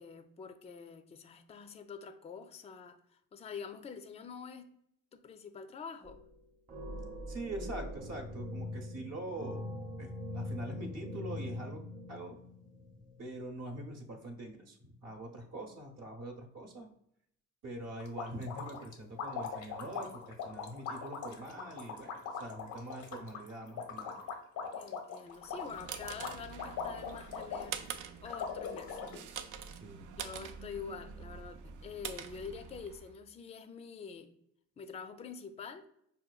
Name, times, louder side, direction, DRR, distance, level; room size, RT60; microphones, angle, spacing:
voice 1, 0.0-4.7 5.1-6.2 24.8-27.8 28.2-29.0 30.2-34.3 34.8-35.8, left 6 dB, 20° left, 8 dB, 0.3 m, -46 dB
sound 1, 6.0-6.4 6.7-13.4, left 1 dB, 30° right, 0.7 m, -42 dB
voice 2, 7.3-9.7 10.0-11.8 12.1-12.4 13.2-16.9 17.6-24.2 29.8-30.0, right 1 dB, 55° right, 2 dB, 0.8 m, -44 dB
sound 2, 18.0-27.9 28.3-29.2, left 6 dB, 80° left, 0.7 m, -41 dB
sound 3, 25.4-33.1, right 7 dB, 80° right, 0.4 m, -45 dB
5.5 x 2.2 x 2.3 m, 0.74 s
cardioid pair, 90°, 30 cm